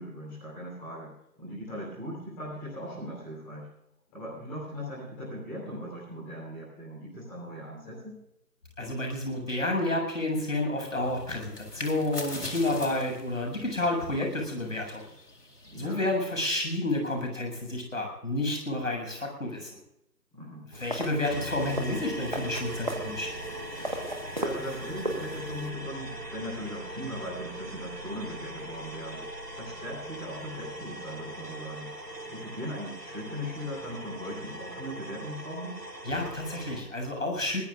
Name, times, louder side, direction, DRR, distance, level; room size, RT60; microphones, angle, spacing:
voice 1, 0.0-3.7 4.1-8.2 15.6-16.0 20.3-20.7 24.3-29.2 29.5-35.7, equal, 5° left, -11 dB, 4.1 m, -39 dB
voice 2, 8.8-15.0 15.8-19.8 20.7-23.3 36.0-37.6, left 2 dB, 50° left, 2 dB, 7.6 m, -30 dB
sound 1, 10.9-16.7, left 1 dB, 65° left, 4.1 m, -43 dB
sound 2, 20.7-25.7, right 1 dB, 30° right, 1.5 m, -37 dB
sound 3, 21.2-36.8, right 1 dB, 70° right, 7.1 m, -40 dB
23.0 x 19.5 x 2.6 m, 0.81 s
figure-of-eight pair, 170°, 49 cm